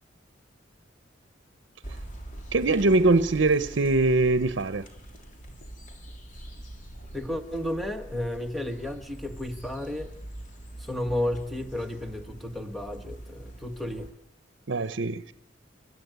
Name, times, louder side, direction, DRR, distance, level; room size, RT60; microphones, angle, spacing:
sound 1, 1.8-14.1, right 1 dB, 45° left, 3.5 m, -43 dB
voice 1, 2.5-4.8 14.7-15.3, right 2 dB, 70° right, 0.8 m, -22 dB
voice 2, 7.1-10.1 10.8-14.1, left 1 dB, ahead, 1.7 m, -32 dB
30.0 x 13.0 x 9.4 m
head